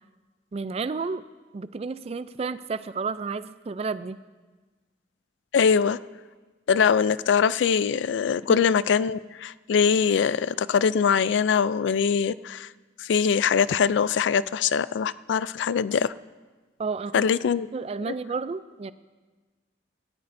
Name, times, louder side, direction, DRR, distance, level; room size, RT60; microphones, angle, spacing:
voice 1, 0.5-1.2 1.5-4.2 8.5-8.6 16.8-17.2 17.7-18.9, right 4 dB, 35° right, 14 dB, 0.3 m, -31 dB
voice 2, 5.5-6.0 6.7-12.7 13.0-16.1 17.1-17.7 18.1-18.2, left 6 dB, 80° left, 17 dB, 0.3 m, -22 dB
17.5 x 14.5 x 2.6 m, 1.3 s
head